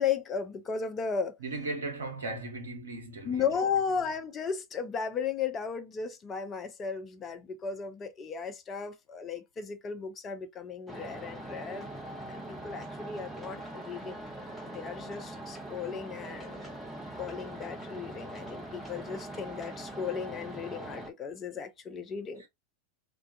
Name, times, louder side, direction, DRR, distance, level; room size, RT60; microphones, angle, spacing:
voice 1, 0.0-1.4 3.2-11.9 12.3-14.2 14.6-16.7 17.2-22.5, left 6 dB, 25° left, 0.5 m, -35 dB
voice 2, 1.4-3.6 22.4-22.5, right 2 dB, 70° right, 0.7 m, -37 dB
sound 1, 10.9-21.1, right 1 dB, 5° left, 0.8 m, -42 dB
2.3 x 2.2 x 2.5 m
figure-of-eight pair, 90°, 0 cm